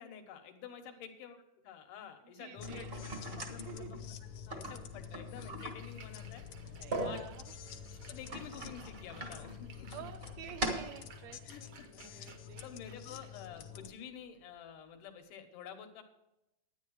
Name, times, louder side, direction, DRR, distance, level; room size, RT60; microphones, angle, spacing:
voice 1, 0.0-1.4 1.6-2.9 3.5-6.4 7.0-7.3 8.1-10.0 11.4-12.3 12.6-16.0, left 8 dB, 85° left, 6 dB, 2.7 m, -49 dB
voice 2, 2.4-3.1 3.6-4.0 6.7-7.4 9.9-11.7 12.0-12.8 13.1-13.2, right 10 dB, 85° right, 7 dB, 1.6 m, -49 dB
sound 1, 2.6-13.9, left 9 dB, 70° left, 1.8 m, -49 dB
sound 2, 2.6-11.0, right 1 dB, 40° right, 0.8 m, -42 dB
Splash splatter, 5.4-15.2, right 5 dB, 65° right, 1.3 m, -60 dB
10.5 x 10.0 x 4.6 m, 0.90 s
omnidirectional pair, 3.6 m